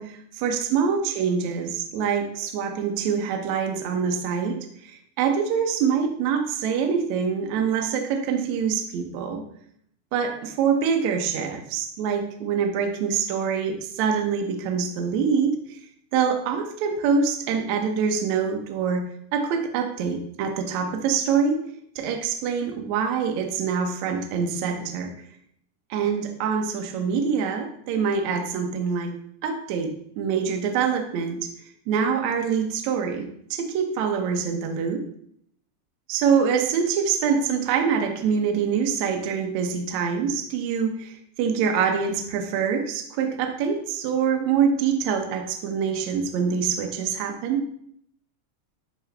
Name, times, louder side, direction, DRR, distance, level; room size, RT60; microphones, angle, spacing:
voice 1, 0.0-4.6 4.8-9.4 10.1-15.8 16.1-19.1 19.3-21.6 21.9-25.1 25.9-29.1 29.4-31.5 31.9-35.0 36.1-47.7, right 6 dB, 75° right, 4 dB, 1.7 m, -25 dB
10.5 x 3.9 x 3.3 m, 0.69 s
omnidirectional pair, 4.3 m